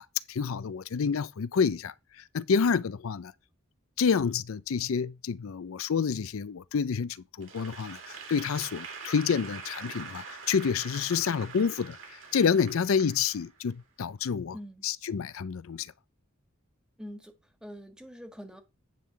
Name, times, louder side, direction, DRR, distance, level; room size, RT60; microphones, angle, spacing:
voice 1, 0.0-3.3 4.0-14.6 14.8-15.9, left 6 dB, 80° left, 0.5 m, -28 dB
Applause / Crowd, 7.4-13.8, right 5 dB, 65° right, 2.7 m, -44 dB
voice 2, 14.5-14.8 17.0-17.3 17.6-18.6, equal, 5° right, 1.4 m, -44 dB
9.9 x 3.8 x 6.8 m
head